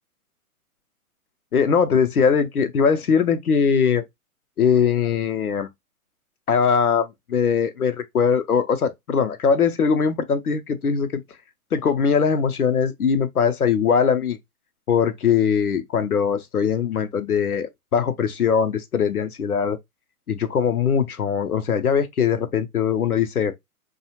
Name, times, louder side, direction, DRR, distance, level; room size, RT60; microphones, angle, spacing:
voice 1, 1.5-4.0 4.6-5.7 6.5-11.2 11.7-14.4 14.9-19.8 20.3-23.5, left 6 dB, 85° left, 0.7 m, -21 dB
2.7 x 2.4 x 2.7 m
figure-of-eight pair, 120°, 44 cm